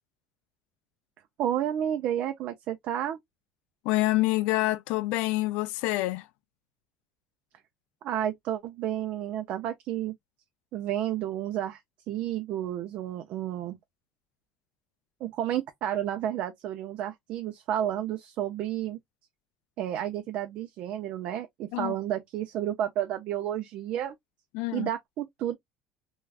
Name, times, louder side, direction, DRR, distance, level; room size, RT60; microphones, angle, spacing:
voice 1, 1.4-3.2 8.0-10.1 10.7-11.8 12.1-13.8 15.2-19.0 19.8-24.1 24.7-25.6, right 11 dB, 55° right, 0.4 m, -31 dB
voice 2, 3.8-6.3 21.7-21.9 24.5-24.9, left 18 dB, 75° left, 0.3 m, -27 dB
3.3 x 2.3 x 2.3 m
cardioid pair, 150°, 3 cm